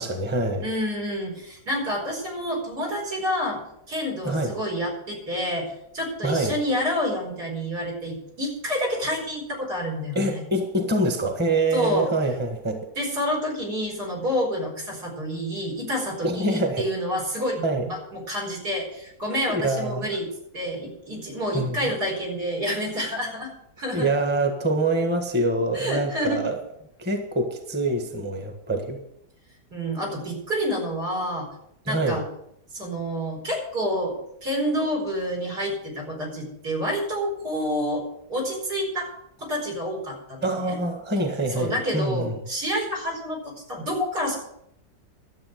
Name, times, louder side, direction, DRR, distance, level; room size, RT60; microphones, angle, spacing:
voice 1, 0.0-0.7 4.2-4.5 6.2-6.6 10.1-12.8 16.2-16.8 17.6-17.8 19.5-20.1 21.5-21.9 23.9-26.6 27.0-29.0 31.8-32.2 40.4-42.3, right 2 dB, 5° right, 5 dB, 1.3 m, -25 dB
voice 2, 0.6-3.6 3.9-10.4 11.7-12.1 13.0-20.3 20.5-23.5 23.8-24.1 25.7-26.4 29.7-31.5 31.9-32.2 32.7-39.1 39.4-40.8 41.6-44.4, equal, 65° right, 0 dB, 5.3 m, -28 dB
12.5 x 8.0 x 7.9 m, 0.76 s
omnidirectional pair, 1.8 m